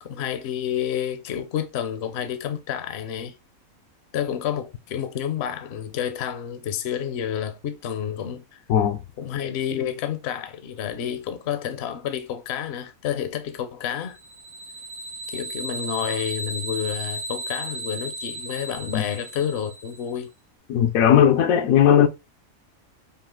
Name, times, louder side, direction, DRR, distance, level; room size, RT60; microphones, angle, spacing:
voice 1, 0.0-3.3 4.1-8.6 9.2-14.2 15.3-20.3, left 9 dB, 60° left, 0.8 m, -29 dB
sound 1, 14.1-20.1, right 1 dB, 80° right, 2.0 m, -34 dB
voice 2, 20.7-22.1, left 9 dB, 80° left, 1.0 m, -17 dB
5.5 x 2.4 x 3.7 m
omnidirectional pair, 1.5 m